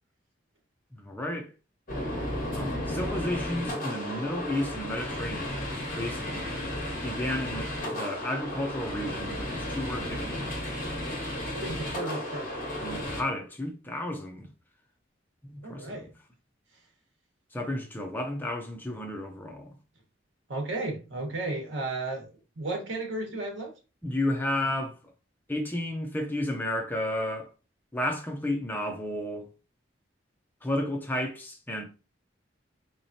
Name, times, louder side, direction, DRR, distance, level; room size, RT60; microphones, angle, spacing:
voice 1, 1.0-1.5 2.5-6.5 7.0-10.6 12.7-14.5 15.4-16.0 17.5-19.8 24.0-25.0 25.5-27.5 27.9-29.5 30.6-31.8, left 1 dB, 10° left, 0.6 m, -32 dB
sound 1, 1.9-13.2, left 1 dB, 45° left, 1.2 m, -34 dB
voice 2, 11.5-12.5 15.6-16.1 20.5-22.3 22.6-23.7, right 2 dB, 75° right, 1.3 m, -33 dB
4.0 x 3.0 x 2.7 m
head